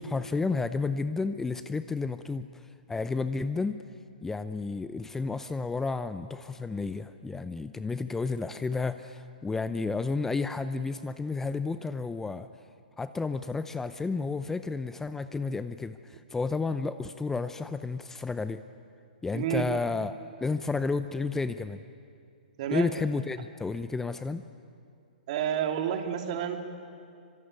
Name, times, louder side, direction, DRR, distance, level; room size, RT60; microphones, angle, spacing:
voice 1, 0.0-3.8 4.2-12.5 13.0-18.6 19.2-21.8 22.7-24.4, left 4 dB, 10° left, 11 dB, 0.6 m, -31 dB
voice 2, 19.3-19.8 22.6-22.9 25.3-26.6, right 9 dB, 50° right, 4 dB, 3.0 m, -30 dB
25.5 x 24.5 x 9.6 m, 2.4 s
hypercardioid pair, 130°, 5 cm